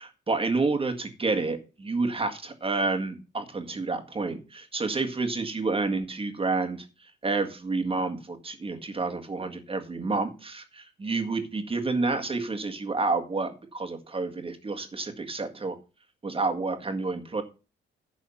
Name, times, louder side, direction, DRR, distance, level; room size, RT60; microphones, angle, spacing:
voice 1, 0.0-6.9 7.2-15.7 16.2-17.4, right 3 dB, 30° right, 5 dB, 1.8 m, -29 dB
11.5 x 4.1 x 7.0 m, 0.33 s
cardioid pair, 90°, 20 cm